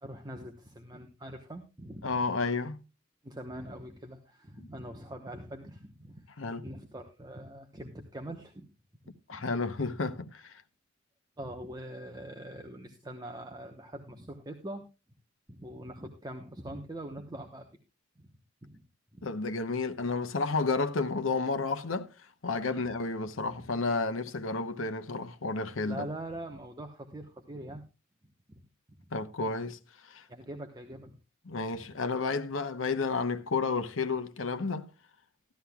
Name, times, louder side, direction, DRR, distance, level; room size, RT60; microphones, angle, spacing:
voice 1, 0.0-2.1 3.2-6.3 6.6-8.7 9.3-9.4 11.4-14.8 15.5-17.7 18.2-18.3 18.6-18.8 19.1-19.3 22.7-22.9 23.5-23.6 25.9-27.8 28.5-28.6 30.3-31.1 31.8-31.9, right 1 dB, 20° right, 1.0 m, -43 dB
voice 2, 2.0-2.8 6.4-6.6 9.3-10.6 19.2-22.1 22.4-26.1 29.1-30.2 31.5-34.9, left 3 dB, 80° left, 0.9 m, -31 dB
15.0 x 13.0 x 2.3 m
head